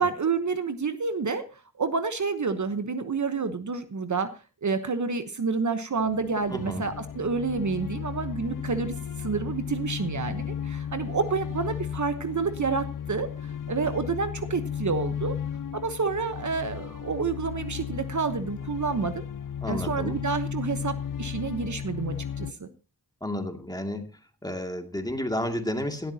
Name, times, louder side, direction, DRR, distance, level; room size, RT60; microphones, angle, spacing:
voice 1, 0.0-4.3 4.6-15.4 15.7-19.2 19.7-22.7, right 5 dB, 50° right, 9 dB, 1.1 m, -29 dB
sound 1, 6.0-22.5, left 8 dB, 60° left, 0.6 m, -35 dB
voice 2, 6.5-6.9 19.6-20.2 23.2-24.1 24.4-26.1, left 1 dB, 10° left, 4 dB, 2.4 m, -31 dB
18.0 x 12.5 x 2.9 m, 0.32 s
wide cardioid pair, 85°, 36 cm